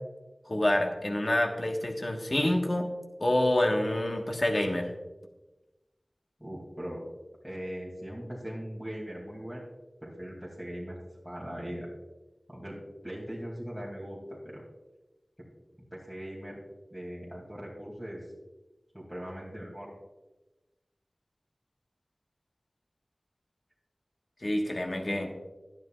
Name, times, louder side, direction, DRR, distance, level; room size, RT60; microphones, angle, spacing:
voice 1, 0.5-2.9 3.2-4.9 24.4-25.3, left 1 dB, 50° left, 2 dB, 1.5 m, -27 dB
voice 2, 6.4-7.0 7.4-9.7 10.0-11.0 11.2-11.9 12.5-12.8 13.0-14.6 15.9-16.6 16.9-18.2 18.9-19.9, equal, 5° right, -6 dB, 2.8 m, -40 dB
12.5 x 10.5 x 2.5 m, 1.1 s
wide cardioid pair, 45°, 0 cm